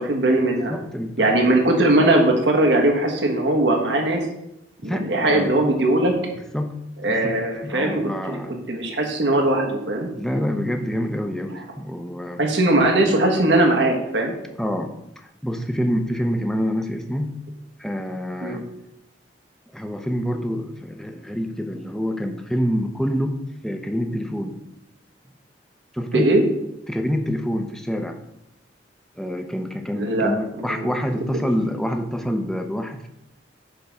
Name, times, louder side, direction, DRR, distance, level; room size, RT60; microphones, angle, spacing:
voice 1, 0.0-0.7 1.2-4.3 4.8-6.2 7.0-10.1 12.4-14.3 18.4-18.6 26.1-26.4 30.0-30.3 30.6-30.8, right 1 dB, 90° right, 1 dB, 1.4 m, -20 dB
voice 2, 0.5-1.5 4.8-5.6 6.5-6.8 7.1-7.4 7.6-8.6 10.1-12.4 14.6-17.4 17.8-18.7 19.7-24.6 25.9-26.4 26.9-28.2 29.1-33.1, equal, 5° left, 5 dB, 0.6 m, -27 dB
8.0 x 3.6 x 5.3 m, 0.83 s
head